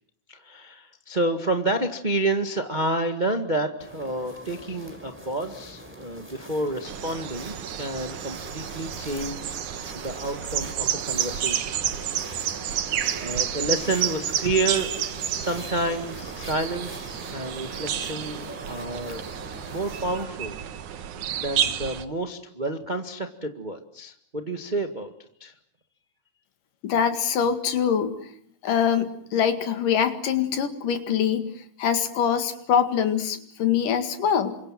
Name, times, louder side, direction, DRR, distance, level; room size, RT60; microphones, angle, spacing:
voice 1, 0.3-9.6 9.9-11.8 12.6-19.2 19.7-20.6 21.4-25.1 25.4-25.5, right 2 dB, 20° right, 6 dB, 1.2 m, -29 dB
sound 1, 3.8-20.2, equal, 5° right, 4.3 m, -43 dB
sound 2, 6.8-22.0, right 10 dB, 70° right, 2.7 m, -30 dB
voice 2, 26.8-28.3 28.6-31.5 31.8-34.6, left 8 dB, 80° left, 9 dB, 3.6 m, -24 dB
29.0 x 25.5 x 7.6 m, 0.65 s
omnidirectional pair, 3.7 m